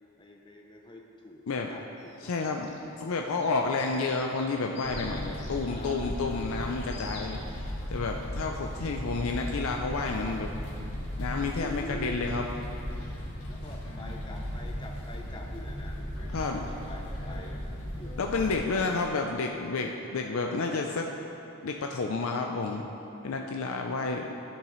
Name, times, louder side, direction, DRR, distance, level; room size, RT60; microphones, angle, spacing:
voice 1, 0.2-2.5 5.6-7.0 11.4-12.5 12.8-18.4 18.7-18.8 20.2-20.9, left 2 dB, 20° left, 0 dB, 0.6 m, -47 dB
sound 1, 2.0-10.4, left 3 dB, 50° left, 1.0 m, -51 dB
voice 2, 2.2-10.5 11.2-12.5 16.3-16.7 18.2-21.1 21.6-22.8 23.2-24.3, left 3 dB, 70° left, 2 dB, 0.5 m, -30 dB
sound 2, 4.8-18.5, equal, 90° left, 1.6 m, -36 dB
13.0 x 7.4 x 3.1 m, 3.0 s
head